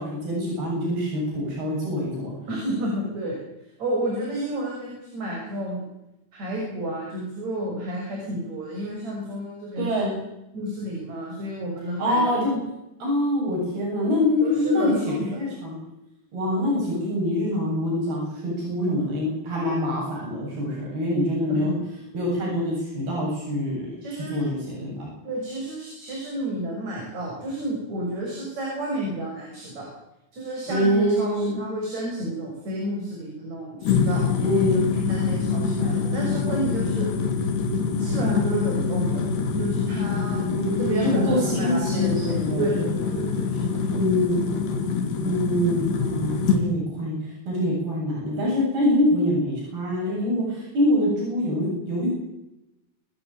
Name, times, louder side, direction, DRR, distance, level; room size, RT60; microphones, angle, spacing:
voice 1, 0.0-2.3 9.8-10.1 12.0-12.6 13.0-15.8 16.3-21.8 22.1-25.1 30.7-31.6 34.4-34.8 40.5-42.7 43.9-44.4 45.2-47.2 47.5-52.1, left 1 dB, 70° right, -3 dB, 10.0 m, -25 dB
voice 2, 2.5-3.4 3.8-5.8 6.3-10.1 10.5-12.4 14.4-15.3 21.5-21.7 24.0-24.5 25.2-29.9 30.3-31.3 31.5-34.2 35.1-37.1 38.0-39.2 39.6-40.5 40.8-44.0, right 1 dB, 45° right, -2 dB, 7.5 m, -31 dB
sound 1, 33.8-46.6, left 5 dB, 90° left, 4.8 m, -25 dB
28.0 x 12.5 x 9.1 m, 0.92 s
omnidirectional pair, 4.5 m